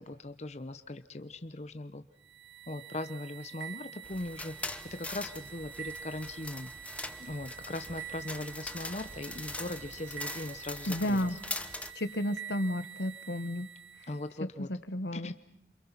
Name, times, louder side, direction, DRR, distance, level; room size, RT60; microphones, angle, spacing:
voice 1, 0.0-2.0 2.7-6.7 7.2-11.4 14.1-14.7 15.1-15.3, left 2 dB, 40° left, 10 dB, 0.9 m, -40 dB
sound 1, 2.2-14.3, right 9 dB, 90° right, 1.9 m, -47 dB
sound 2, 4.0-11.9, left 2 dB, 10° left, 1.1 m, -42 dB
voice 2, 10.9-11.4 11.9-13.7 14.6-15.3, left 1 dB, 80° left, 11 dB, 1.3 m, -32 dB
29.0 x 27.0 x 5.8 m, 0.75 s
head